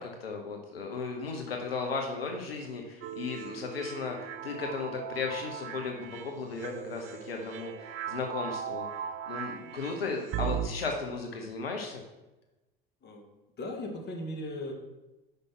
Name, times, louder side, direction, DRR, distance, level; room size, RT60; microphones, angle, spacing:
voice 1, 0.0-8.8 9.3-12.0, left 4 dB, 85° left, 2 dB, 0.9 m, -35 dB
sound 1, 3.0-10.7, right 9 dB, 45° right, 0.5 m, -38 dB
voice 2, 13.6-14.7, left 1 dB, 35° left, 2 dB, 1.8 m, -37 dB
5.5 x 5.2 x 5.8 m, 1.0 s
hypercardioid pair, 75°, 29 cm